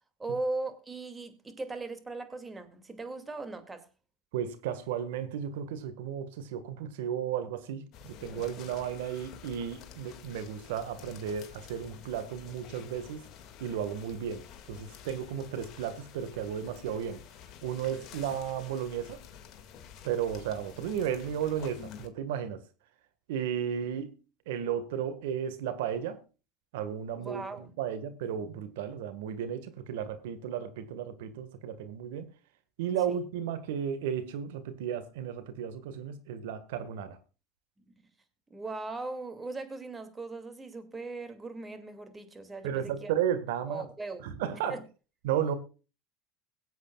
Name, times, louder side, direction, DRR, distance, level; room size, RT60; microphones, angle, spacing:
voice 1, 0.2-3.9 27.2-27.7 33.1-33.2 38.5-43.1 43.7-44.3 44.7-44.8, right 3 dB, 15° right, 2.4 m, -38 dB
voice 2, 4.3-13.2 13.6-17.2 17.6-19.2 20.0-22.6 23.3-24.1 24.5-26.2 26.7-32.3 32.8-37.2 42.6-43.9 44.2-44.8 45.2-45.5, right 9 dB, 80° right, 1.6 m, -34 dB
sound 1, 7.9-22.1, left 8 dB, 55° left, 2.1 m, -49 dB
22.0 x 8.2 x 2.4 m
hypercardioid pair, 95°, 0 cm